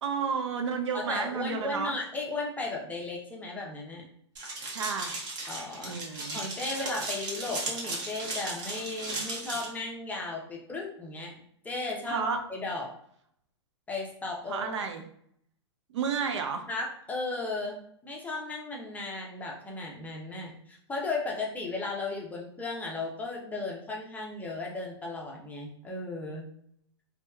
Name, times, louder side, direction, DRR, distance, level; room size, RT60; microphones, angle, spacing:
voice 1, 0.0-1.9 4.7-5.3 5.8-6.4 12.1-12.4 14.5-15.0 15.9-16.6, right 6 dB, 75° right, 5 dB, 0.4 m, -31 dB
voice 2, 0.9-4.1 5.5-11.3 11.6-12.9 13.9-14.7 16.7-26.5, left 3 dB, 10° left, -2 dB, 0.5 m, -35 dB
sound 1, 4.4-9.7, right 2 dB, 30° right, 0.7 m, -36 dB
2.8 x 2.2 x 2.2 m, 0.67 s
hypercardioid pair, 120°, 15 cm